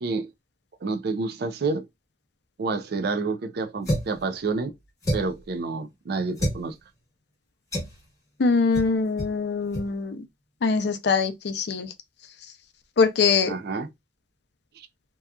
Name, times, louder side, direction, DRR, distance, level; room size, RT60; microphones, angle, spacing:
voice 1, 0.8-1.9 2.6-4.7 5.1-6.8 13.5-13.9 14.8-14.9, right 4 dB, 60° right, 0.4 m, -29 dB
sound 1, 3.8-4.2 5.0-5.4 6.4-6.6 7.7-8.0 8.7-8.9 9.2-9.3 9.7-9.9, equal, 20° left, 1.2 m, -28 dB
voice 2, 8.4-10.2 10.6-11.9 13.0-13.5, left 4 dB, 65° left, 0.5 m, -23 dB
2.7 x 2.3 x 2.3 m
head